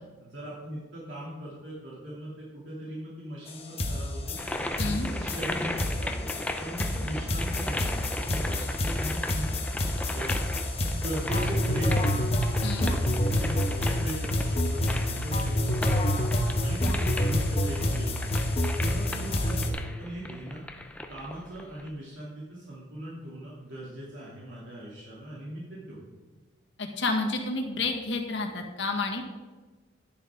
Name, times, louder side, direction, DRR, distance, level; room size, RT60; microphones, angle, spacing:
voice 1, 0.2-4.4 4.8-6.3 6.6-9.6 10.1-10.3 10.9-12.3 12.8-16.1 16.6-18.3 18.8-20.6 21.1-26.0, right 1 dB, 75° right, -6 dB, 2.8 m, -39 dB
sound 1, 3.5-3.6 3.8-19.7, left 1 dB, 30° left, 1.3 m, -28 dB
sound 2, 4.4-21.9, left 1 dB, 5° left, 0.6 m, -37 dB
voice 2, 4.8-5.1 12.6-12.9 26.8-29.2, left 3 dB, 70° left, 2 dB, 1.7 m, -30 dB
11.5 x 10.5 x 3.8 m, 1.3 s
head